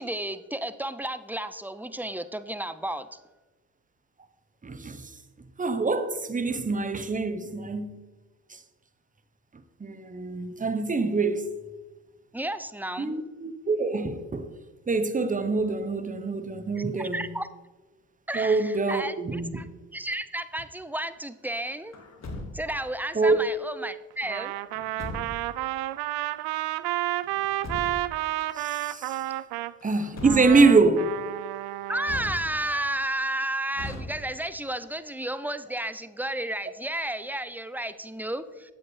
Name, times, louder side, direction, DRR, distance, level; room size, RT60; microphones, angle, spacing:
voice 1, 0.0-3.2 12.3-13.1 16.8-17.5 18.3-19.7 19.9-21.9 22.5-24.5 31.9-38.7, right 1 dB, 5° right, 0.5 m, -32 dB
voice 2, 4.6-5.1 5.6-8.0 8.5-8.6 9.8-11.5 13.0-14.5 14.9-17.3 18.3-19.6 23.1-23.4 28.5-29.2 29.8-31.2, right 3 dB, 20° right, 0.9 m, -25 dB
Truck, 21.9-22.9 24.7-25.6 27.2-28.2 29.8-30.8 32.0-32.9 33.7-34.6, left 1 dB, 45° left, 1.7 m, -39 dB
Trumpet, 24.2-29.7 30.2-32.2, right 16 dB, 70° right, 0.5 m, -31 dB
9.6 x 7.9 x 3.2 m
supercardioid pair, 60°, 39 cm